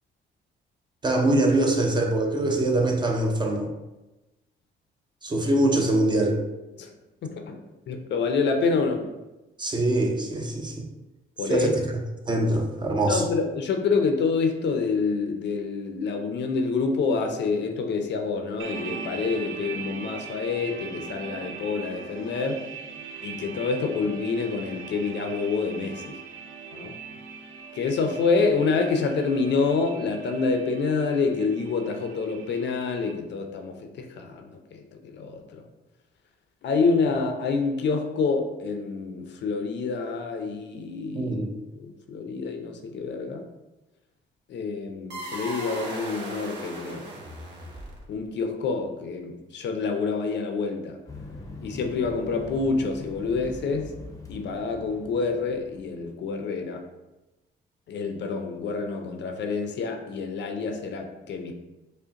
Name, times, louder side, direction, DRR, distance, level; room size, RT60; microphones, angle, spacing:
voice 1, 1.0-3.7 5.2-6.4 9.6-10.9 11.5-12.0 12.3-13.2 41.1-41.5, right 2 dB, 20° right, 1 dB, 0.6 m, -23 dB
voice 2, 7.2-9.1 11.4-11.7 13.1-22.6 23.2-26.2 26.7-26.9 27.7-35.6 36.6-41.3 41.7-43.4 44.5-47.0 48.1-51.0 51.6-53.9 54.3-56.8 57.9-61.5, left 4 dB, 65° left, 5 dB, 0.5 m, -27 dB
sound 1, 18.6-33.1, right 5 dB, 85° right, 0.4 m, -40 dB
sound 2, 45.1-48.2, right 1 dB, 60° right, 1.1 m, -37 dB
sound 3, 51.1-56.1, left 2 dB, 15° left, 0.6 m, -42 dB
4.9 x 2.1 x 2.8 m, 1.0 s
cardioid pair, 90°, 20 cm